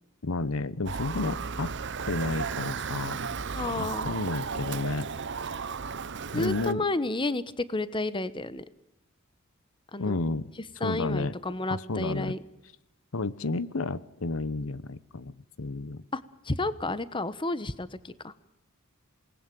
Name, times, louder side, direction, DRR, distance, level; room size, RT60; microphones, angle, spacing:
voice 1, 0.2-1.7 2.1-3.2 3.8-5.1 6.3-6.8 10.0-10.5 10.8-11.3 11.7-12.4 13.1-16.0, left 3 dB, 70° left, 18 dB, 0.9 m, -31 dB
Motor vehicle (road) / Siren, 0.9-6.7, right 5 dB, 60° right, 0.9 m, -34 dB
voice 2, 3.5-4.1 6.3-8.6 9.9-10.2 10.8-12.4 16.1-18.3, left 2 dB, 25° left, 15 dB, 1.1 m, -31 dB
27.5 x 19.5 x 9.2 m, 0.92 s
head